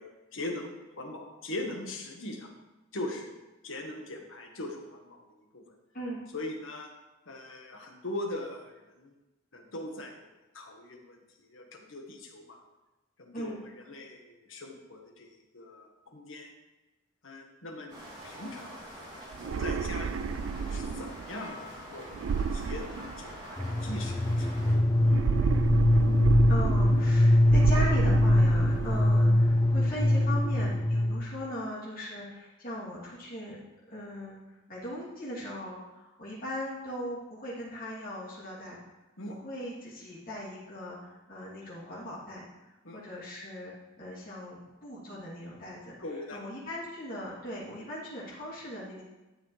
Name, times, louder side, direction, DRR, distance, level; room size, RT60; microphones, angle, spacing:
voice 1, 0.0-2.5 2.9-3.4 3.6-5.2 5.5-5.8 6.3-6.9 7.3-9.1 9.5-11.2 11.5-12.6 13.2-16.5 17.2-18.8 19.6-20.4 20.7-22.1 22.5-24.8 39.2-39.3 42.8-43.0 46.0-46.4, left 1 dB, 70° left, 2 dB, 1.5 m, -41 dB
sound 1, 17.9-24.7, equal, 20° right, 3.5 m, -45 dB
sound 2, 19.3-21.2 22.1-23.6 25.0-27.2 27.5-29.2, right 5 dB, 70° right, 0.4 m, -30 dB
sound 3, 23.6-31.4, left 1 dB, 15° left, 0.6 m, -23 dB
voice 2, 26.5-33.6 33.9-38.8 39.3-42.4 42.9-45.9 46.3-49.0, equal, 45° left, -9 dB, 3.1 m, -39 dB
11.5 x 7.1 x 3.4 m, 1.1 s
head